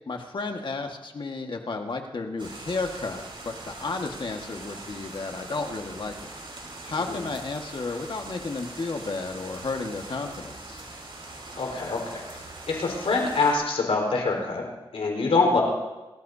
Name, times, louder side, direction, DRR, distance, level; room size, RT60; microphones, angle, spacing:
voice 1, 0.1-6.3 6.8-10.8, left 3 dB, 55° left, 3 dB, 1.7 m, -32 dB
sound 1, 2.4-13.5, right 2 dB, 60° right, 5.2 m, -42 dB
voice 2, 11.6-14.6 14.9-15.6, left 3 dB, 85° left, 0 dB, 4.6 m, -25 dB
28.5 x 15.0 x 2.8 m, 1.1 s
wide cardioid pair, 85°, 10 cm